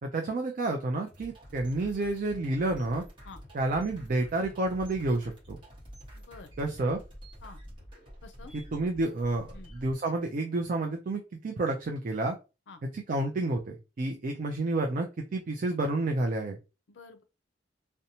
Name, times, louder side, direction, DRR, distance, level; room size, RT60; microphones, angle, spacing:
voice 1, 0.0-3.0 3.5-5.6 6.6-7.0 8.5-12.4 12.9-16.6, right 2 dB, 45° right, 0.4 m, -30 dB
sound 1, 1.1-9.9, equal, 25° right, 1.1 m, -48 dB
voice 2, 6.1-6.5 7.4-7.6 8.2-8.5 9.5-9.7 12.7-12.8 16.9-17.2, left 4 dB, 70° left, 0.5 m, -49 dB
2.7 x 2.1 x 2.7 m
head